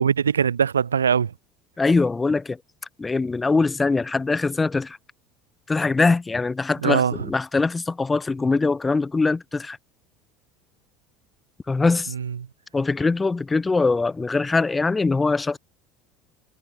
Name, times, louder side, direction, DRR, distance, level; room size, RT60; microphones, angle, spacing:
voice 1, 0.0-1.3 6.8-7.2 12.1-12.4, right 7 dB, 85° right, 2.8 m, -21 dB
voice 2, 1.8-2.6 3.0-5.0 5.7-9.8 11.7-12.1 12.7-15.6, left 3 dB, 20° left, 5.7 m, -22 dB
hypercardioid pair, 70°, 0 cm